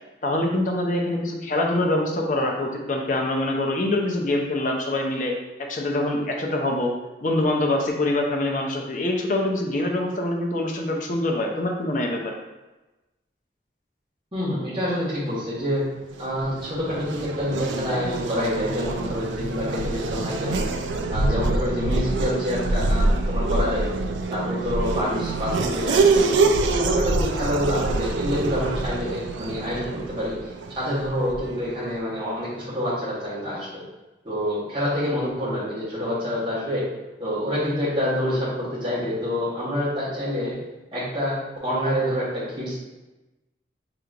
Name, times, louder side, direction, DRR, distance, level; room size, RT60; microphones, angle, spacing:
voice 1, 0.2-6.9 7.2-12.3, left 1 dB, 45° left, 1 dB, 0.5 m, -24 dB
voice 2, 14.3-15.8 16.2-20.6 21.1-23.9 24.3-26.2 26.6-30.3 30.7-33.7 34.2-36.8 37.2-40.5 40.9-41.4 41.6-42.8, equal, 25° right, -11 dB, 1.3 m, -27 dB
Race car auto racing / Accelerating revving vroom, 16.0-31.7, right 3 dB, 90° right, 0.4 m, -25 dB
4.9 x 2.9 x 2.5 m, 1.1 s
head